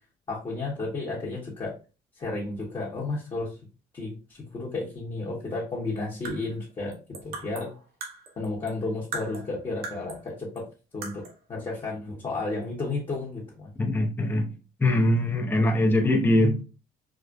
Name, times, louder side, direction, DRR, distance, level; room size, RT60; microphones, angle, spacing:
voice 1, 0.3-1.7 2.2-3.6 3.9-7.7 8.4-10.6 10.9-11.2 11.5-13.7, left 3 dB, 30° left, -4 dB, 1.1 m, -32 dB
sound 1, 6.0-8.8 9.1-10.3 10.6-10.7 11.0-11.4, right 3 dB, 65° right, 1.0 m, -39 dB
voice 2, 13.8-14.5 14.8-16.6, left 1 dB, 10° left, 3 dB, 0.6 m, -22 dB
4.8 x 2.1 x 2.4 m, 0.33 s
cardioid pair, 110°, 17 cm